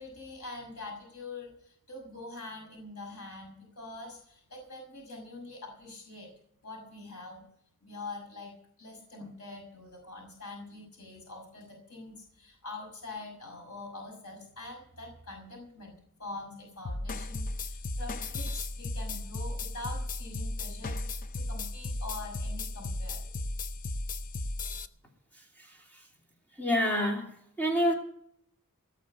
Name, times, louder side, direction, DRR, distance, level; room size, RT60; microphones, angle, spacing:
voice 1, 0.0-6.3 6.6-7.4 7.8-23.4, left 2 dB, 85° left, 0 dB, 5.9 m, -44 dB
sound 1, 16.8-24.9, left 2 dB, 40° left, 0.6 m, -35 dB
voice 2, 26.6-27.3 27.6-27.9, equal, 10° left, 0 dB, 2.9 m, -26 dB
18.0 x 6.7 x 8.6 m, 0.67 s
head